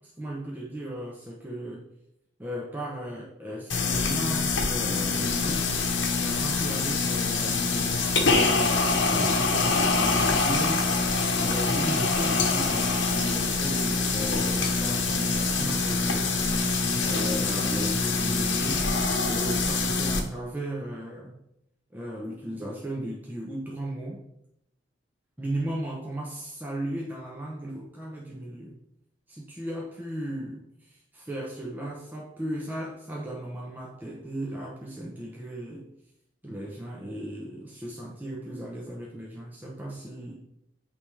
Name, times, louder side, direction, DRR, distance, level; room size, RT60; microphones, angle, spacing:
voice 1, 0.2-1.8 2.4-10.9 11.4-16.4 17.0-18.8 19.2-21.4 21.9-24.2 25.4-28.8 29.3-35.9 36.4-40.3, right 1 dB, 10° right, -3 dB, 0.7 m, -36 dB
sound 1, 3.7-20.2, left 3 dB, 75° left, 0.9 m, -25 dB
8.5 x 3.4 x 3.2 m, 0.81 s
head